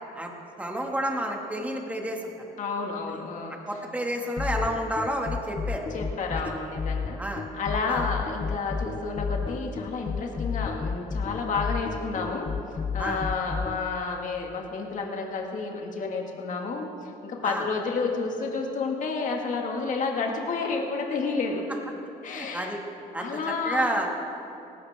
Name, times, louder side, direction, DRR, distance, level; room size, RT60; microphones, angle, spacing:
voice 1, 0.6-2.3 3.1-3.2 3.7-6.0 7.2-7.4 7.9-8.0 13.0-13.2 17.4-17.6 22.3-22.8 23.1-24.3, right 1 dB, 10° right, 1 dB, 2.0 m, -30 dB
voice 2, 2.6-3.8 5.9-12.5 12.9-21.7 22.2-22.7 23.2-23.9, left 4 dB, 50° left, 1 dB, 2.1 m, -30 dB
sound 1, 4.4-13.8, left 5 dB, 30° left, 0.6 m, -31 dB
18.5 x 16.5 x 3.6 m, 2.7 s
cardioid pair, 110°, 17 cm